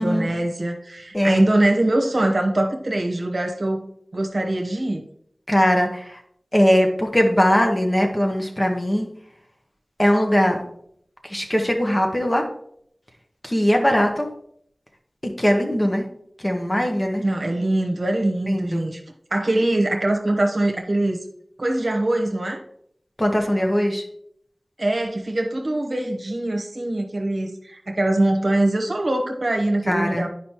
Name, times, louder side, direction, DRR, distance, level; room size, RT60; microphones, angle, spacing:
voice 1, 0.0-5.0 17.2-19.0 19.3-21.2 21.6-22.6 24.8-30.3, right 1 dB, 65° right, 1.0 m, -23 dB
voice 2, 5.5-6.1 6.5-9.1 10.0-10.6 11.2-12.4 13.4-14.3 15.2-16.0 16.4-17.2 18.5-18.9 23.2-24.0 29.9-30.3, equal, 30° left, 1.2 m, -20 dB
9.8 x 5.1 x 3.0 m
wide cardioid pair, 50°, 0 cm